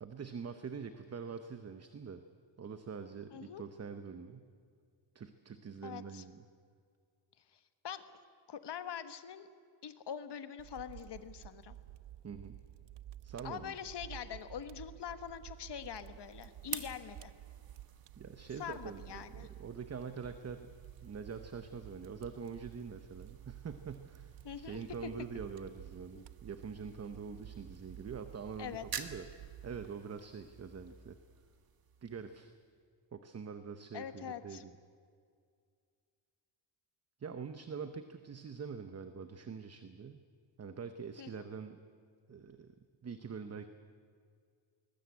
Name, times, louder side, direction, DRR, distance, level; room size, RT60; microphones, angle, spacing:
voice 1, 0.0-2.2 2.6-4.5 5.1-6.4 12.2-12.6 13.2-13.7 18.2-20.7 21.0-29.3 29.6-31.2 32.0-32.5 33.1-34.7 37.2-40.2 40.6-41.8 42.3-42.8 43.0-43.7, right 6 dB, 35° right, 9 dB, 0.9 m, -45 dB
voice 2, 3.3-3.6 5.8-6.2 7.8-8.0 8.5-9.5 9.8-11.8 13.4-17.3 18.6-19.5 24.4-24.8 26.1-26.2 28.6-29.0 33.9-34.6 41.2-41.4, left 8 dB, 65° left, 11 dB, 1.4 m, -44 dB
Fire, 10.6-29.9, right 13 dB, 70° right, 0.5 m, -52 dB
sound 1, 15.9-32.8, right 7 dB, 50° right, 1.5 m, -51 dB
20.5 x 20.5 x 8.3 m, 2.2 s
wide cardioid pair, 155°, 44 cm